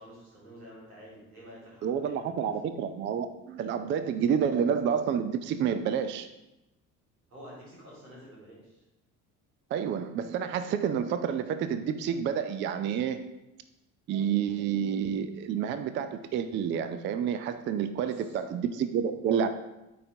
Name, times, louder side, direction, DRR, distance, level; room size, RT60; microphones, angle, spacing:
voice 1, 0.0-2.5 7.3-8.8 18.0-18.4, equal, 80° right, -6 dB, 2.2 m, -49 dB
voice 2, 1.8-6.3 9.7-13.2 14.1-19.5, right 8 dB, 30° right, 10 dB, 0.4 m, -29 dB
9.1 x 3.9 x 2.7 m, 0.94 s
figure-of-eight pair, 55°, 43 cm